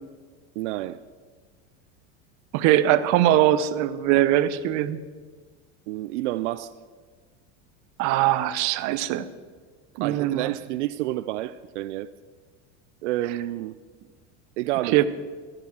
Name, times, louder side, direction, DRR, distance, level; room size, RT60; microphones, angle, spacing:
voice 1, 0.6-1.0 5.9-6.7 9.9-12.1 13.0-13.8 14.6-15.0, right 15 dB, 90° right, 0.5 m, -29 dB
voice 2, 2.5-5.0 8.0-9.3 10.0-10.5 14.9-15.0, right 13 dB, 55° right, 0.8 m, -21 dB
14.0 x 8.9 x 6.4 m
supercardioid pair, 125°, 34 cm